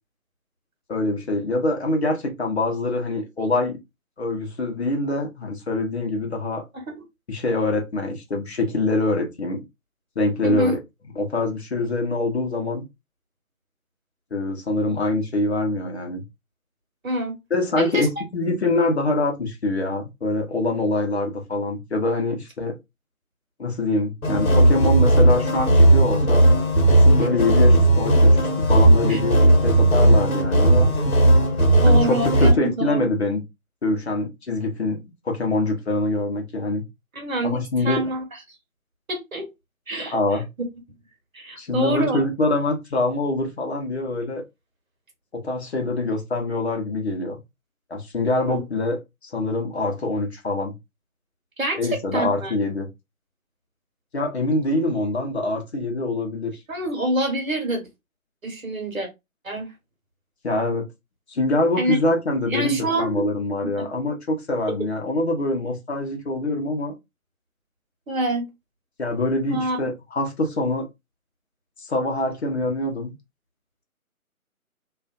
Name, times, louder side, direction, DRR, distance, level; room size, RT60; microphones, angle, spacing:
voice 1, 0.9-3.8 4.2-6.6 7.3-9.6 10.2-10.8 11.2-12.8 14.3-16.2 17.5-22.8 23.6-26.5 26.9-30.9 31.8-33.4 33.8-35.0 35.2-36.8 37.4-38.1 40.1-40.5 41.6-44.4 45.3-47.4 47.9-49.0 49.2-50.7 51.8-52.9 54.1-56.5 60.4-60.9 61.3-66.9 69.0-70.9 71.9-73.1, left 2 dB, 50° left, 0.8 m, -24 dB
voice 2, 10.4-10.8 17.0-17.3 17.8-18.1 29.1-29.2 31.8-33.0 37.1-38.2 39.1-39.5 39.9-40.1 41.3-42.2 48.5-48.6 51.6-52.5 56.7-57.9 58.4-59.1 59.4-59.7 61.8-62.0 62.5-63.3 63.8-63.9 68.1-68.5 69.5-69.8, right 1 dB, 70° right, 1.2 m, -26 dB
sound 1, 24.2-32.5, right 1 dB, 80° left, 1.1 m, -16 dB
2.5 x 2.4 x 2.3 m
figure-of-eight pair, 150°, 43 cm